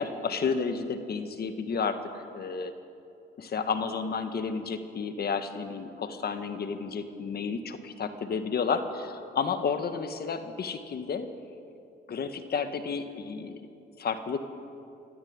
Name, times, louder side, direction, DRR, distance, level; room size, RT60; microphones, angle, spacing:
voice 1, 0.0-2.7 3.4-11.3 12.1-13.6 14.0-14.4, left 5 dB, 50° left, 9 dB, 1.6 m, -31 dB
23.0 x 13.5 x 8.9 m, 2.7 s
cardioid pair, 90°, 20 cm